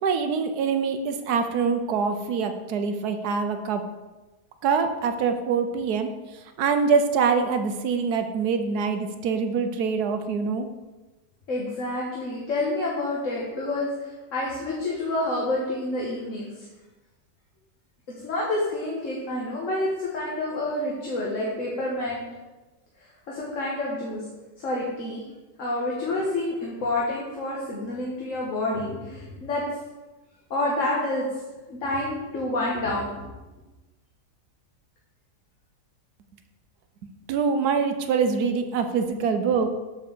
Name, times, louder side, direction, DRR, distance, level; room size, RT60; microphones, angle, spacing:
voice 1, 0.0-3.8 4.6-6.1 6.6-10.7 37.3-39.7, right 5 dB, 75° right, 7 dB, 1.2 m, -24 dB
voice 2, 11.5-16.7 18.2-22.2 23.3-24.3 24.6-25.2 25.6-29.6 30.5-31.3 31.7-33.3, left 2 dB, 50° left, -5 dB, 1.7 m, -28 dB
7.2 x 4.5 x 6.7 m, 1.1 s
omnidirectional pair, 1.8 m